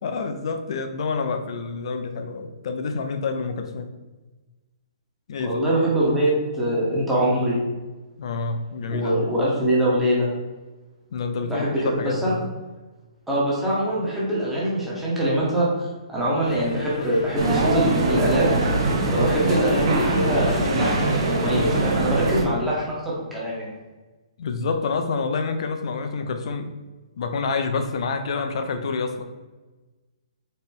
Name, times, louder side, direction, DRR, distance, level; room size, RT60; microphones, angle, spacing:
voice 1, 0.0-3.9 5.3-5.7 8.2-9.2 11.1-12.4 24.4-26.7 27.2-29.3, left 4 dB, 60° left, 7 dB, 0.5 m, -28 dB
voice 2, 5.4-7.6 8.9-10.3 11.4-12.3 13.3-15.7 16.1-18.5 19.1-23.7, right 1 dB, 5° right, -7 dB, 0.8 m, -23 dB
sound 1, 16.4-22.0, left 2 dB, 85° left, 0.8 m, -35 dB
sound 2, 17.4-22.4, right 2 dB, 45° right, 0.8 m, -23 dB
4.2 x 2.0 x 3.6 m, 1.2 s
hypercardioid pair, 155°, 3 cm